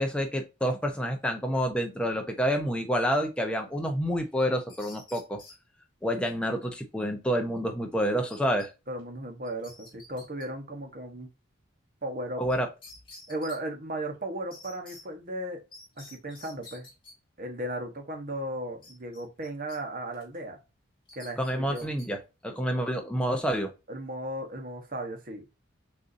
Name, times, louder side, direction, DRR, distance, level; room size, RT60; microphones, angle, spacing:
voice 1, 0.0-5.4 6.0-8.7 12.4-12.7 21.4-23.7, equal, 5° left, 0.7 m, -28 dB
sound 1, 4.4-5.6 8.3-8.7 9.0-9.1 9.4-10.5 12.5-12.6 12.8-13.6 14.5-15.0 15.7-17.1 18.8-19.8 20.1-20.4 21.1-22.1, left 2 dB, 25° left, 1.6 m, -49 dB
voice 2, 8.9-11.3 12.0-12.4 13.3-15.6 16.0-16.9 17.4-20.6 21.2-21.9 23.9-25.5, right 1 dB, 40° right, 1.0 m, -36 dB
6.5 x 2.7 x 2.6 m
head